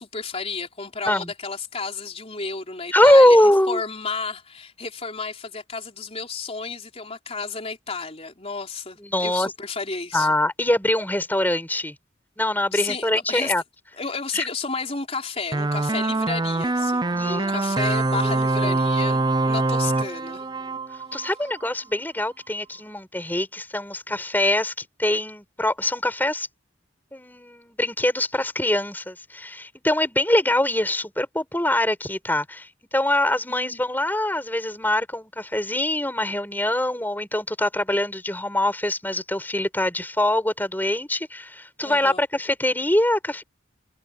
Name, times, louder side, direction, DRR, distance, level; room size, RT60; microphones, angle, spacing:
voice 1, 0.0-10.3 12.7-13.5 13.9-20.5 33.5-33.8 41.8-42.2, left 4 dB, 30° left, 4.0 m, -32 dB
voice 2, 2.9-3.8 9.0-9.5 10.1-11.9 12.4-13.6 14.3-14.5 17.1-17.6 18.2-18.3 18.6-18.8 19.8-20.0 21.1-26.5 27.1-32.7 32.9-43.4, left 1 dB, 10° left, 6.2 m, -23 dB
sound 1, 15.5-21.6, right 2 dB, 20° right, 0.6 m, -24 dB
head